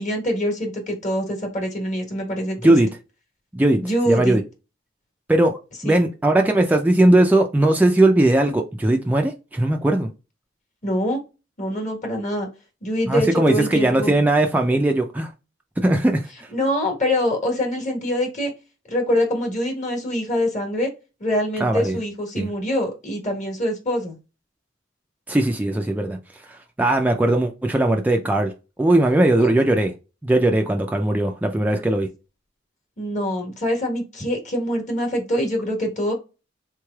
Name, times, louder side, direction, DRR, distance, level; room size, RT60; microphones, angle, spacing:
voice 1, 0.0-2.7 3.8-4.4 5.8-6.0 10.8-11.2 11.6-12.5 12.8-14.2 16.5-18.5 18.9-20.9 21.2-24.2 29.4-29.5 33.0-36.1, left 1 dB, 40° left, 1.2 m, -24 dB
voice 2, 3.5-4.4 5.3-10.1 13.1-15.3 15.8-16.5 21.6-22.0 22.4-22.5 25.3-26.2 26.5-28.5 28.8-29.9 30.2-32.1, right 1 dB, 10° right, 0.3 m, -19 dB
3.8 x 3.1 x 2.2 m
head